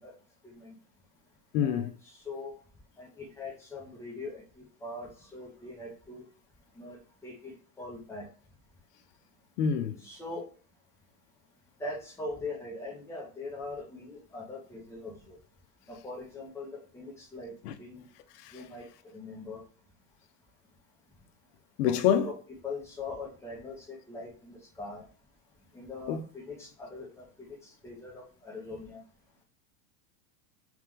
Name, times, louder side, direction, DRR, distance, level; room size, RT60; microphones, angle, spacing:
voice 1, 0.4-0.7 1.6-2.5 3.0-6.2 6.7-7.0 7.2-8.3 10.0-10.4 11.8-15.4 15.9-16.7 16.9-17.5 17.8-18.1 18.5-19.6 21.8-22.3 22.6-25.0 25.7-29.0, left 3 dB, 5° left, 0.9 m, -42 dB
voice 2, 1.5-1.9 9.6-10.0 17.6-17.7 18.4-18.5 21.8-22.3 26.1-26.2, left 8 dB, 85° left, 0.6 m, -26 dB
3.3 x 3.1 x 3.6 m
supercardioid pair, 160°, 46 cm